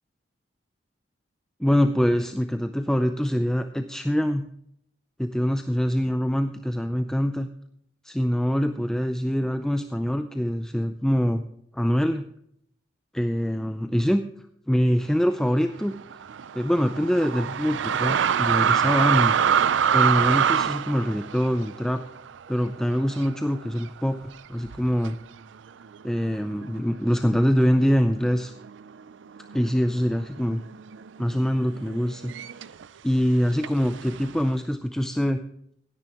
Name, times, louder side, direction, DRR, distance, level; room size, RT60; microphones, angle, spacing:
voice 1, 1.6-4.5 5.2-7.5 8.0-11.4 11.7-12.3 13.1-14.2 14.7-15.9 16.5-19.4 19.9-22.0 22.5-25.2 26.0-28.5 29.5-30.6 31.2-32.3 33.0-35.4, equal, 5° left, 7 dB, 0.5 m, -24 dB
sound 1, 15.8-23.4 23.8-23.9 24.7-25.1 25.8-26.0 26.2-28.0 28.3-28.8 29.1-32.9 33.6-34.5, right 8 dB, 90° right, 0.4 m, -26 dB
16.5 x 9.9 x 3.0 m, 0.70 s
head